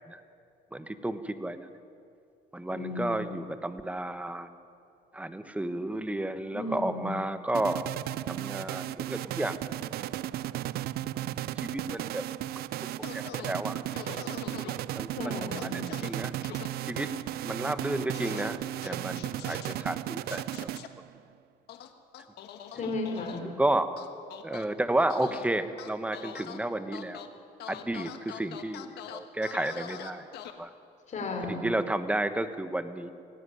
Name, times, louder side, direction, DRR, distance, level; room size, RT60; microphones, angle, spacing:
voice 1, 0.7-1.7 2.5-4.5 5.1-7.9 8.3-9.6 11.6-12.2 13.1-13.8 14.4-14.7 14.9-16.3 16.9-17.1 17.4-20.7 23.6-23.9 24.4-27.2 27.7-30.3 30.6-30.7 31.5-33.1, right 1 dB, 10° right, 10 dB, 1.2 m, -32 dB
voice 2, 2.7-3.3 6.5-7.1 15.1-15.8 22.7-23.5 25.2-25.3 31.1-31.7, left 2 dB, 45° left, 3 dB, 4.7 m, -35 dB
sound 1, 7.5-21.2, right 14 dB, 70° right, 0.5 m, -35 dB
sound 2, 13.0-13.5 13.9-14.7 15.5-16.1 16.4-16.7 18.1-18.5 18.8-19.7 20.3-20.9 21.7-23.4 24.0-24.7 25.1-25.4 25.8-26.6 26.9-27.3 27.6-30.5, left 10 dB, 75° left, 1.5 m, -43 dB
18.5 x 15.0 x 9.9 m, 2.4 s
cardioid pair, 110°, 17 cm